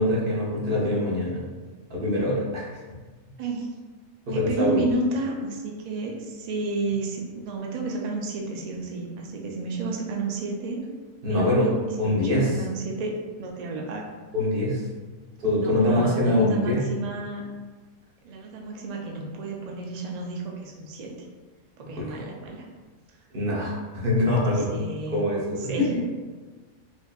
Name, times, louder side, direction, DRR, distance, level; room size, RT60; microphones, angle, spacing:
voice 1, 0.0-1.4 1.9-2.8 4.3-4.8 11.2-11.7 12.0-12.5 14.3-14.8 15.4-16.9 22.0-22.1 23.3-24.7 25.1-26.0, left 1 dB, 50° right, -5 dB, 1.0 m, -24 dB
voice 2, 3.4-3.8 4.3-10.9 11.3-14.1 15.6-17.4 18.2-21.3 21.8-22.7 24.3-25.2 25.6-26.0, right 3 dB, 75° right, 0 dB, 0.3 m, -32 dB
4.5 x 2.6 x 2.3 m, 1.4 s
omnidirectional pair, 1.3 m